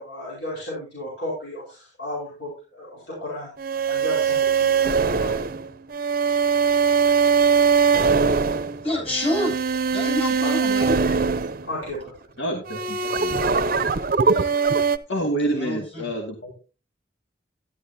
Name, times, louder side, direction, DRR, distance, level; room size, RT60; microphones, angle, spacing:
voice 1, 0.0-3.5 3.9-5.4 10.4-10.5 11.0-11.1 11.7-12.1, left 1 dB, 70° left, -4 dB, 5.0 m, -34 dB
sound 1, 3.6-12.1 12.7-15.0, right 5 dB, 50° right, 0.6 m, -21 dB
voice 2, 7.6-9.6 9.9-11.1 15.5-16.1, left 1 dB, 35° left, -1 dB, 7.5 m, -29 dB
voice 3, 12.4-13.4 15.1-16.5, right 1 dB, 85° left, 0 dB, 2.5 m, -28 dB
11.5 x 11.5 x 2.8 m, 0.32 s
head